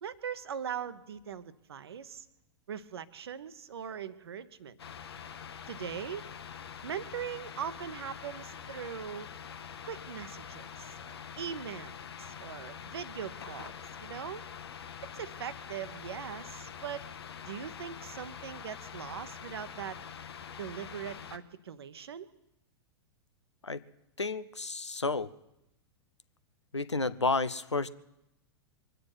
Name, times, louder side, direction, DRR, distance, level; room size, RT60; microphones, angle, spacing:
voice 1, 0.0-2.3 2.7-4.8 5.7-6.3 6.8-9.3 9.8-13.7 14.0-14.4 15.1-17.0 17.4-20.0 20.6-22.3, right 8 dB, 65° right, 13 dB, 1.0 m, -40 dB
sound 1, 4.8-21.4, left 7 dB, 65° left, 1.0 m, -45 dB
voice 2, 24.2-25.3 26.7-27.9, left 3 dB, 85° left, 15 dB, 0.7 m, -31 dB
23.5 x 9.3 x 6.0 m, 0.88 s
figure-of-eight pair, 100°, 14 cm